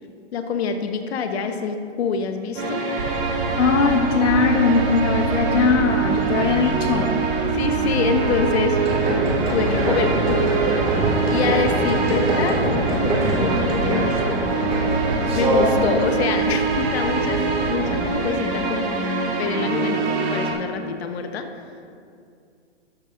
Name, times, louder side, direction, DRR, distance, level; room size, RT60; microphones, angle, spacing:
voice 1, 0.3-2.8 7.5-8.8 9.5-10.5 11.3-14.4 15.3-18.9 19.4-21.5, left 5 dB, 60° left, 6 dB, 1.3 m, -26 dB
sound 1, 2.5-20.5, right 3 dB, 40° right, 2.9 m, -24 dB
sound 2, 3.0-18.3, right 5 dB, 90° right, 0.8 m, -30 dB
voice 2, 3.6-7.3, left 5 dB, 85° left, 5 dB, 0.9 m, -20 dB
sound 3, 8.7-15.9, right 1 dB, 15° right, 2.1 m, -24 dB
13.0 x 12.5 x 2.7 m, 2.4 s
hypercardioid pair, 135°, 36 cm